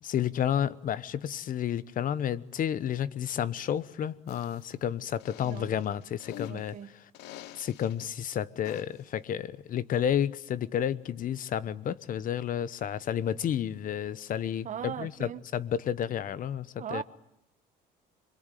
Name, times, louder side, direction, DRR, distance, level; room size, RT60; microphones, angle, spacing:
voice 1, 0.0-6.8 7.5-17.0, left 9 dB, 55° left, 1.1 m, -31 dB
sound 1, 4.3-4.7 5.2-6.7 7.1-8.1 8.6-9.1, left 13 dB, 90° left, 1.0 m, -46 dB
voice 2, 6.4-6.9 14.6-15.4 16.8-17.0, right 9 dB, 45° right, 1.3 m, -38 dB
26.0 x 22.0 x 9.3 m
cardioid pair, 110°, 17 cm